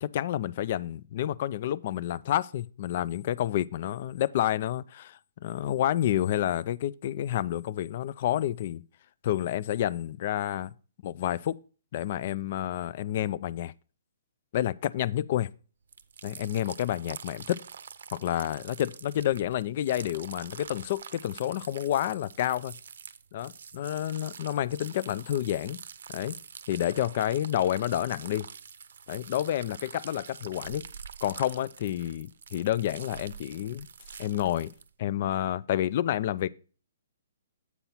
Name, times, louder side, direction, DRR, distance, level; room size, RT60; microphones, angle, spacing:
voice 1, 0.0-8.8 9.2-10.7 11.0-11.6 11.9-13.7 14.5-15.5 16.2-17.6 18.1-22.8 23.3-25.8 26.1-26.4 26.7-28.5 29.1-30.8 31.2-33.9 34.2-34.7 35.0-36.5, left 12 dB, 45° left, 0.3 m, -29 dB
sound 1, 15.9-34.9, right 6 dB, 70° right, 0.6 m, -46 dB
8.2 x 4.3 x 5.5 m
hypercardioid pair, 155°, 0 cm